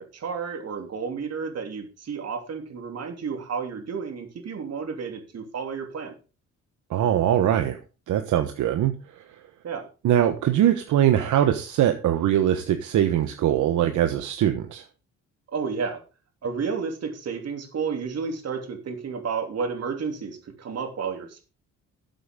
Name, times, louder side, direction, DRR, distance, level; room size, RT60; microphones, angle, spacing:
voice 1, 0.0-6.1 9.6-9.9 15.5-16.0 16.4-21.4, right 5 dB, 55° right, 5 dB, 3.1 m, -31 dB
voice 2, 6.9-7.8 8.1-8.9 10.0-14.8, right 11 dB, 80° right, 7 dB, 1.2 m, -22 dB
13.5 x 7.8 x 3.7 m, 0.32 s
cardioid pair, 90°, 30 cm